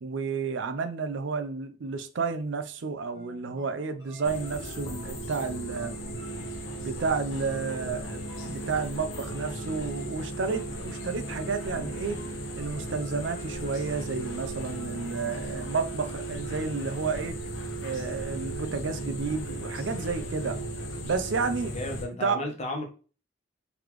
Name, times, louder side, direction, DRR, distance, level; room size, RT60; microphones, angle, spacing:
voice 1, 0.0-6.0 6.8-12.2 12.5-17.4 17.8-20.6 21.0-21.8 22.2-22.4, right 4 dB, 70° right, 0.5 m, -31 dB
sound 1, 3.1-16.8, left 1 dB, 20° right, 1.4 m, -51 dB
sound 2, 4.2-22.1, right 1 dB, 80° left, 1.0 m, -36 dB
voice 2, 21.7-22.9, left 2 dB, 35° left, 1.0 m, -33 dB
3.9 x 3.3 x 3.0 m
head